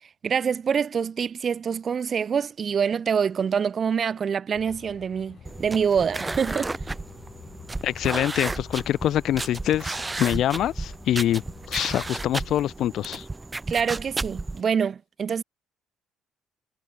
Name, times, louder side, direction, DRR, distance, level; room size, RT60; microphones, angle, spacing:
voice 1, 0.2-6.7 13.7-15.4, right 7 dB, 40° right, 1.2 m, -25 dB
sound 1, 4.5-12.6, left 8 dB, 50° left, 6.4 m, -48 dB
sound 2, 5.4-14.6, right 2 dB, 15° right, 0.4 m, -33 dB
voice 2, 7.8-11.4 11.7-13.3, left 12 dB, 65° left, 0.7 m, -25 dB
cardioid pair, 100°, 0 cm